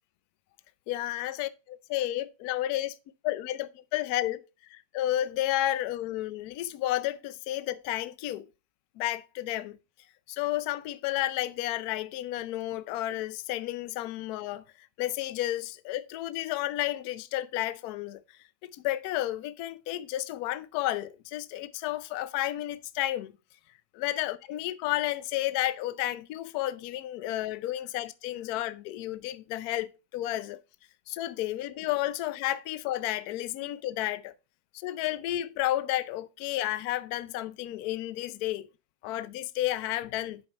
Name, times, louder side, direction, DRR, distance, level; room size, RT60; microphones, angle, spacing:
voice 1, 0.9-3.0 3.2-8.5 9.0-9.8 10.3-14.6 15.0-18.2 18.6-23.3 23.9-30.6 31.1-34.3 34.7-38.7 39.0-40.4, left 14 dB, 75° left, 1.0 m, -32 dB
7.1 x 5.3 x 4.2 m
omnidirectional pair, 1.8 m